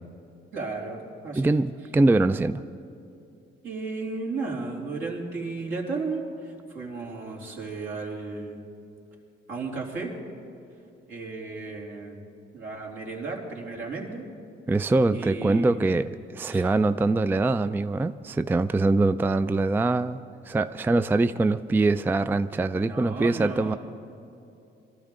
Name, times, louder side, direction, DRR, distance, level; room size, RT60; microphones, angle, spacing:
voice 1, 0.5-1.5 3.6-8.6 9.5-10.1 11.1-12.2 12.5-14.3 15.1-15.8 16.5-16.6 22.8-23.8, right 3 dB, 75° right, -2 dB, 2.9 m, -34 dB
voice 2, 1.3-2.6 14.7-23.7, right 2 dB, 10° right, 12 dB, 0.3 m, -23 dB
22.0 x 13.0 x 3.7 m, 2.8 s
cardioid pair, 90°, 20 cm